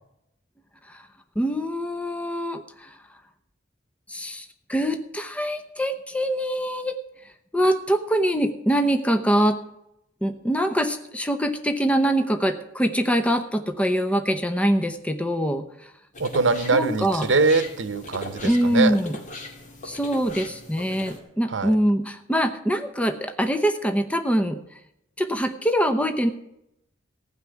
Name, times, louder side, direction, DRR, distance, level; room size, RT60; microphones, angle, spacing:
voice 1, 1.4-3.0 4.1-9.6 10.2-15.9 16.7-17.3 18.4-19.2 19.8-24.8 25.2-26.3, equal, 5° left, 7 dB, 0.8 m, -24 dB
sound 1, 16.1-21.2, left 2 dB, 40° left, 2.1 m, -39 dB
voice 2, 16.2-19.0 21.5-21.8, right 3 dB, 75° right, 13 dB, 0.9 m, -23 dB
15.5 x 5.9 x 9.2 m, 0.81 s
head